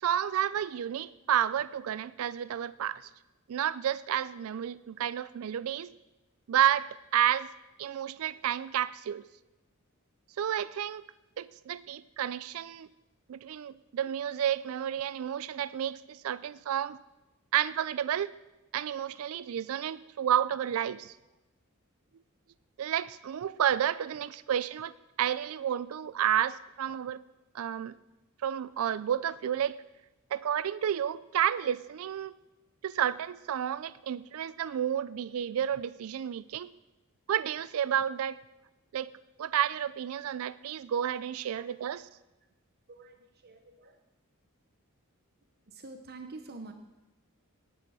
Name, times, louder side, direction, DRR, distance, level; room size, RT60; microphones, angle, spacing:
voice 1, 0.0-3.1 3.5-5.9 6.5-7.5 7.8-9.2 10.4-11.0 11.4-12.9 13.3-17.0 17.5-18.3 18.7-21.1 22.8-24.9 25.2-27.2 27.5-28.0 28.4-29.8 30.3-32.3 32.8-36.7 37.3-38.4 38.9-39.1 39.4-42.0, right 9 dB, 70° right, 18 dB, 0.4 m, -31 dB
voice 2, 42.9-44.0 45.7-46.7, right 3 dB, 50° right, 6 dB, 0.9 m, -47 dB
10.5 x 8.3 x 7.6 m, 1.0 s
head